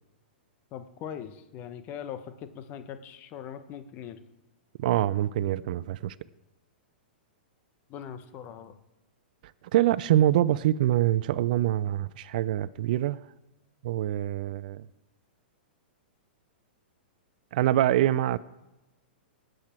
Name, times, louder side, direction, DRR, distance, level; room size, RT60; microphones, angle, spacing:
voice 1, 0.7-4.2 7.9-8.7, left 9 dB, 35° left, 10 dB, 1.1 m, -41 dB
voice 2, 4.8-6.1 9.7-13.2 13.8-14.8 17.5-18.4, right 13 dB, 55° right, 17 dB, 0.4 m, -25 dB
18.5 x 7.9 x 4.5 m, 0.99 s
hypercardioid pair, 115°, 5 cm